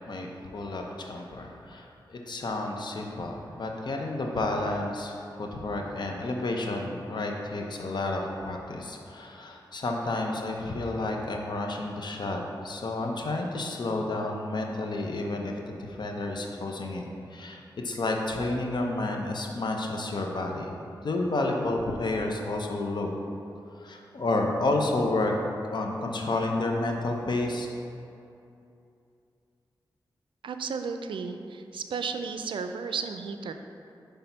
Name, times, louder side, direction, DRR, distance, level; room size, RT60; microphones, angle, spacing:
voice 1, 0.1-20.7 21.0-23.1 23.8-25.3 25.7-27.7, left 2 dB, 60° left, 1 dB, 0.7 m, -30 dB
voice 2, 30.4-33.5, right 5 dB, 85° right, 7 dB, 0.4 m, -33 dB
5.8 x 3.4 x 5.4 m, 2.7 s
cardioid pair, 65°, 8 cm